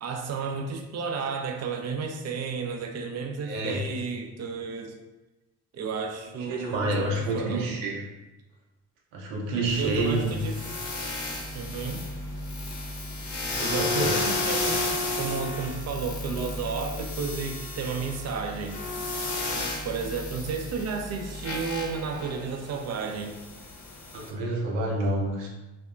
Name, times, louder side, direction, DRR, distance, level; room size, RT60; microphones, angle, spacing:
voice 1, 0.0-5.0 5.7-7.7 9.8-10.8 11.5-12.0 13.2-14.8 15.1-18.8 19.8-23.4, right 5 dB, 40° right, 4 dB, 0.4 m, -32 dB
voice 2, 3.4-3.8 6.4-8.1 9.1-10.3 13.7-14.1 24.1-25.5, right 2 dB, 75° right, -2 dB, 0.7 m, -28 dB
sound 1, 9.7-24.3, left 2 dB, 40° left, 0.7 m, -33 dB
2.7 x 2.1 x 2.4 m, 1.1 s
hypercardioid pair, 50°, 44 cm